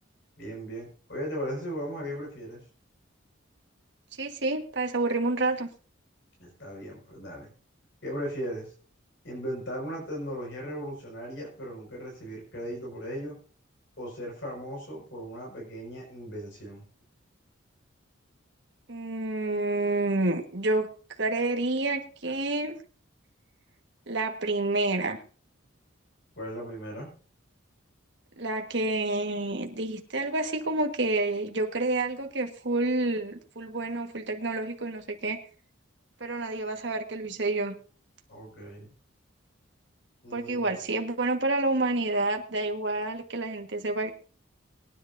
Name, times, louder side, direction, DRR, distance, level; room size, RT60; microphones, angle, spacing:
voice 1, 0.4-2.6 6.4-7.5 8.0-8.7 9.2-13.4 14.0-16.8 26.4-27.1 38.3-38.9 40.2-40.7, equal, 60° left, -2 dB, 5.7 m, -37 dB
voice 2, 4.2-5.7 18.9-20.9 21.2-22.8 24.1-25.2 28.4-35.4 36.2-37.8 40.3-44.1, right 2 dB, 60° right, 4 dB, 1.7 m, -29 dB
22.5 x 10.5 x 2.7 m, 0.39 s
head